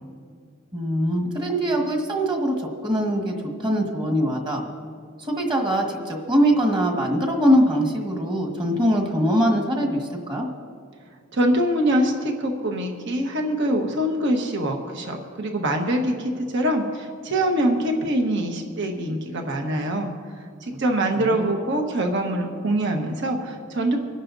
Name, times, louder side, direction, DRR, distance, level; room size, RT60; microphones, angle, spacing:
voice 1, 0.7-3.3 3.6-4.7 5.2-10.5 21.2-21.5, equal, 20° right, 1 dB, 1.7 m, -22 dB
voice 2, 11.3-20.1 20.6-24.0, right 1 dB, 60° right, 3 dB, 1.4 m, -24 dB
25.5 x 11.0 x 2.7 m, 2.1 s
head